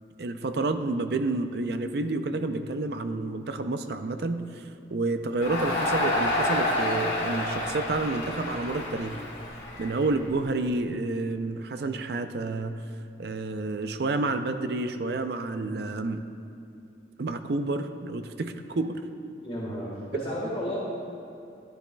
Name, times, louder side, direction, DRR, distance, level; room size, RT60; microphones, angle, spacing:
voice 1, 0.2-4.6 4.9-9.2 9.8-12.8 13.2-16.2 17.2-19.0 20.1-20.2, right 2 dB, 60° right, 8 dB, 0.4 m, -29 dB
Crowd, 5.4-10.6, left 1 dB, 90° left, 1.9 m, -29 dB
voice 2, 19.4-20.8, equal, 30° left, -5 dB, 1.5 m, -32 dB
11.5 x 10.0 x 2.3 m, 2.6 s
head